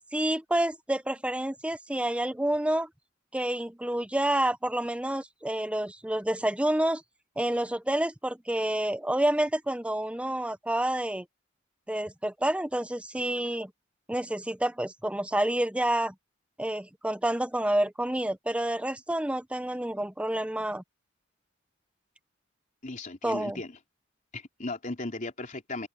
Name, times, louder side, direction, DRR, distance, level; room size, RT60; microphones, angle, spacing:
voice 1, 0.1-2.9 3.3-7.0 7.4-11.3 11.9-13.7 14.1-16.1 16.6-20.8 23.2-23.6, right 1 dB, 5° right, 0.8 m, -28 dB
voice 2, 22.8-23.8 24.3-25.9, left 2 dB, 40° left, 3.6 m, -36 dB
open air
head